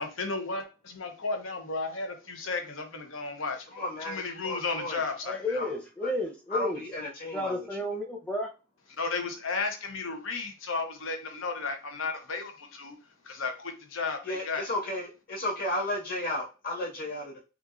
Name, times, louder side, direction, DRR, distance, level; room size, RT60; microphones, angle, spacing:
voice 1, 0.2-3.7 4.0-5.6 9.0-13.0 13.3-14.6, left 4 dB, 80° left, 5 dB, 0.9 m, -34 dB
voice 2, 3.7-5.0 5.6-5.7 6.0-6.1 6.5-7.7 14.2-17.4, left 1 dB, 45° left, -5 dB, 2.0 m, -34 dB
voice 3, 5.2-6.8 7.3-8.5, left 1 dB, 5° left, 0 dB, 0.7 m, -32 dB
5.8 x 2.6 x 2.5 m, 0.31 s
head